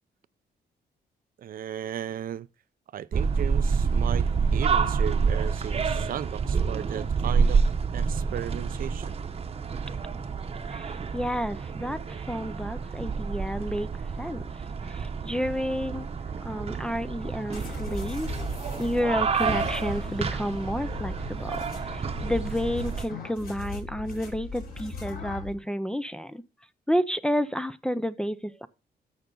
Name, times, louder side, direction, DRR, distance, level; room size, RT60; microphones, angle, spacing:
voice 1, 1.4-2.5 2.9-7.6 7.9-9.1, right 10 dB, 55° right, 0.5 m, -35 dB
sound 1, 3.1-23.0, right 5 dB, 35° right, 0.9 m, -28 dB
voice 2, 10.7-13.9 14.2-16.1 16.4-18.4 18.8-26.4 26.9-28.7, equal, 5° left, 0.5 m, -31 dB
sound 2, 17.5-25.5, left 3 dB, 60° left, 4.1 m, -38 dB
13.5 x 5.8 x 3.8 m
cardioid pair, 140°, 17 cm